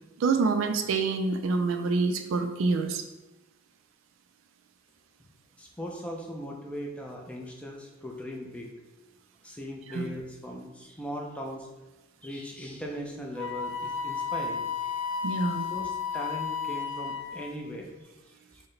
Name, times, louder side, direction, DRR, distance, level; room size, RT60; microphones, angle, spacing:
voice 1, 0.2-3.0 9.9-10.1 15.2-15.7, right 4 dB, 70° right, 7 dB, 0.3 m, -26 dB
voice 2, 5.6-8.7 9.4-11.7 12.2-14.9 15.7-18.6, equal, 5° left, -1 dB, 0.4 m, -39 dB
Wind instrument woodwind instrument, 13.4-17.5, left 6 dB, 80° left, 0.4 m, -33 dB
4.6 x 2.1 x 3.1 m, 1.1 s
head